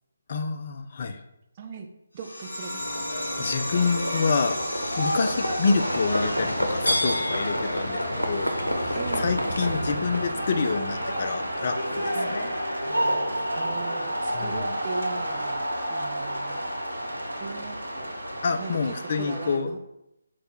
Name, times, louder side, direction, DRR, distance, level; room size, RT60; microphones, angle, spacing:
voice 1, 0.3-1.2 3.4-4.6 5.0-12.6 14.3-14.8 18.4-19.7, left 4 dB, 40° left, 7 dB, 0.4 m, -28 dB
voice 2, 1.5-1.9 2.1-3.1 5.4-5.5 8.9-9.3 12.1-12.4 13.6-16.6 17.4-18.2 18.6-19.8, right 5 dB, 30° right, 3 dB, 0.4 m, -39 dB
sound 1, 2.2-13.2, left 1 dB, 70° left, 1.0 m, -37 dB
Livestock farm animals working animals, 2.8-19.2, equal, 90° left, 0.7 m, -32 dB
sound 2, 5.7-19.6, right 1 dB, 80° right, 0.8 m, -31 dB
4.8 x 2.3 x 4.1 m, 0.84 s
figure-of-eight pair, 145°, 0 cm